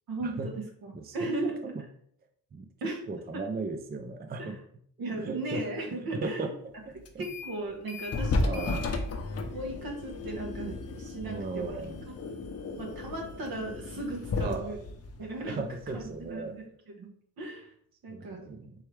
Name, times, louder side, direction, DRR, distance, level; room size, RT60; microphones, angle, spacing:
voice 1, 0.1-1.6 2.8-3.0 3.3-3.4 4.4-4.5 5.0-6.5 7.2-9.1 9.5-11.7 12.1-12.2 12.8-14.8 15.2-17.1 17.4-17.7 18.0-18.6, right 2 dB, 70° right, 1 dB, 1.3 m, -37 dB
voice 2, 0.9-1.8 2.5-2.7 3.1-4.6 5.1-5.6 6.0-6.5 7.1-7.2 8.4-8.8 11.2-12.0 14.4-14.8 15.4-16.6 18.1-18.7, right 3 dB, 25° right, 5 dB, 0.5 m, -36 dB
sound 1, 7.1-7.6 7.9-16.3, left 3 dB, 40° left, 0.7 m, -34 dB
4.5 x 3.3 x 3.2 m, 0.64 s
cardioid pair, 80°, 37 cm